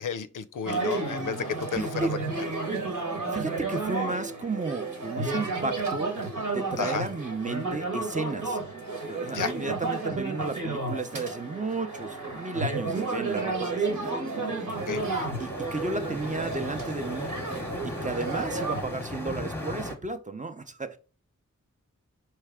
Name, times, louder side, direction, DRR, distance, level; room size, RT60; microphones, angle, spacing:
voice 1, 0.0-1.9 6.8-7.1 9.3-9.5 14.9-15.0, left 7 dB, 80° left, 0.5 m, -32 dB
sound 1, 0.7-18.8, right 3 dB, 80° right, 1.4 m, -32 dB
voice 2, 1.8-2.1 3.3-6.2 6.5-8.6 9.0-14.1 14.4-14.5 15.4-17.3 17.8-21.0, right 3 dB, 25° right, 0.5 m, -33 dB
sound 2, 14.7-20.0, left 2 dB, 5° left, 0.9 m, -37 dB
4.6 x 3.2 x 3.5 m
wide cardioid pair, 70°, 31 cm